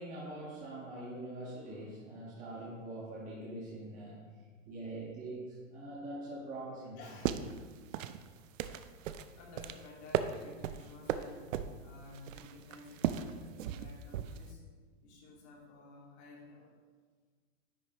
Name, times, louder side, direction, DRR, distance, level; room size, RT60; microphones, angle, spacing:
voice 1, 0.0-4.2 4.6-7.0, right 1 dB, 20° right, -7 dB, 1.5 m, -43 dB
voice 2, 6.8-7.7 9.4-11.5 11.8-14.6 15.0-16.8, left 2 dB, 55° left, -2 dB, 2.1 m, -53 dB
sound 1, 7.0-14.5, right 9 dB, 80° right, 0.5 m, -38 dB
10.5 x 4.7 x 3.0 m, 1.5 s
hypercardioid pair, 135°, 39 cm